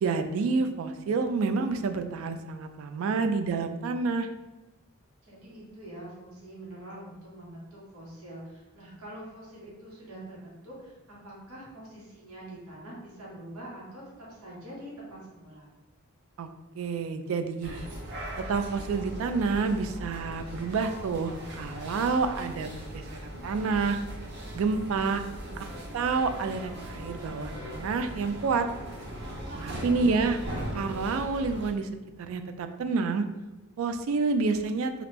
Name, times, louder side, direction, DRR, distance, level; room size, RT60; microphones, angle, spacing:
voice 1, 0.0-4.3 16.4-16.5 16.8-17.9 18.4-22.7 22.9-24.0 24.5-25.2 25.9-28.7 29.6-30.4 30.7-31.9 32.2-33.2 33.8-34.9, right 4 dB, 70° right, 8 dB, 0.3 m, -28 dB
voice 2, 5.2-15.7 25.2-25.7 29.7-30.6, right 1 dB, 85° right, -6 dB, 1.2 m, -45 dB
sound 1, 17.6-31.7, right 1 dB, 50° right, 0.7 m, -39 dB
3.1 x 2.4 x 3.3 m, 1.0 s
head